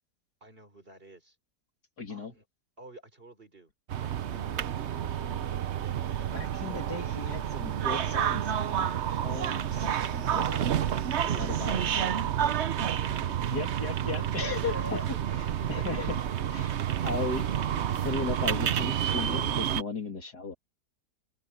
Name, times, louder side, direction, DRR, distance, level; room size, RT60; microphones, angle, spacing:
voice 1, 0.4-1.4 2.1-2.4 2.8-6.3 6.6-7.0 11.2-13.5 14.5-15.2, equal, 30° right, 3.9 m, -49 dB
voice 2, 2.0-2.3 4.5-4.6 6.3-10.6 11.2-12.2 13.5-15.0 15.3-17.5 17.9-20.5, left 4 dB, 65° left, 3.5 m, -37 dB
sound 1, 3.9-19.8, right 9 dB, 55° right, 0.8 m, -29 dB
omnidirectional pair, 1.8 m